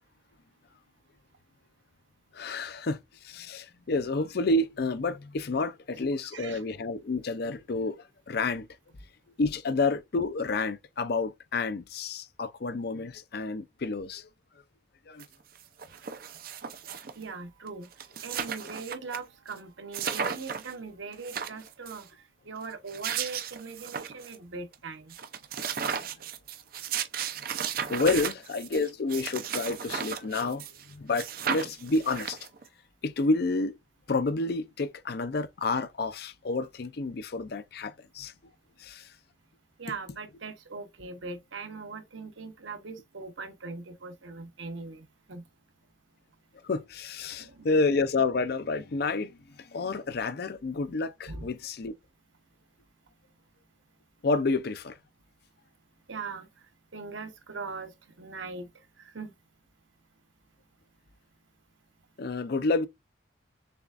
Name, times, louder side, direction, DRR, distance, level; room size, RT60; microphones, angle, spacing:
voice 1, 2.3-8.0 8.3-8.7 9.4-14.3 15.1-15.2 25.9-26.1 27.9-32.4 33.0-33.7 34.1-38.3 38.8-39.1 46.6-49.3 49.6-51.9 54.2-55.0 62.2-62.9, left 3 dB, 55° left, 0.5 m, -29 dB
voice 2, 6.2-6.6 15.8-16.1 17.1-25.1 39.8-45.4 47.3-47.7 51.3-51.5 56.1-59.3, right 4 dB, 80° right, 1.0 m, -41 dB
sound 1, 15.2-15.3 15.6-17.2 17.7-17.8 17.9-19.2 19.5-19.6 19.9-20.7 21.1-22.0 22.7-24.4 24.7-24.8 25.1-30.9 31.1-32.7, right 7 dB, 50° right, 0.5 m, -35 dB
6.8 x 2.4 x 2.4 m
head